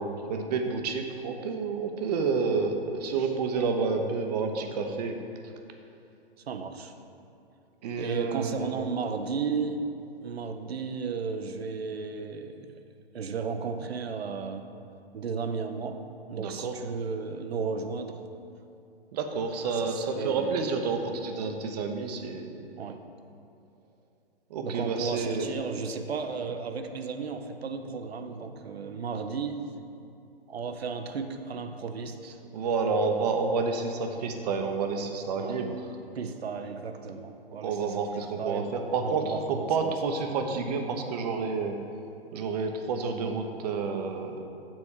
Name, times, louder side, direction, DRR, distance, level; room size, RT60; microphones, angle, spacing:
voice 1, 0.0-5.2 7.8-8.8 16.4-16.7 19.1-22.6 24.5-25.5 32.5-35.8 37.6-41.8 42.3-44.4, right 4 dB, 40° right, 5 dB, 0.8 m, -29 dB
voice 2, 6.5-6.9 8.0-9.9 10.2-12.8 13.1-14.7 15.1-16.0 16.3-18.2 19.7-20.7 22.8-23.0 24.6-29.7 30.5-32.4 35.4-35.6 36.1-40.2, right 5 dB, 80° right, 8 dB, 0.7 m, -34 dB
7.3 x 4.2 x 6.5 m, 2.6 s
hypercardioid pair, 135°, 31 cm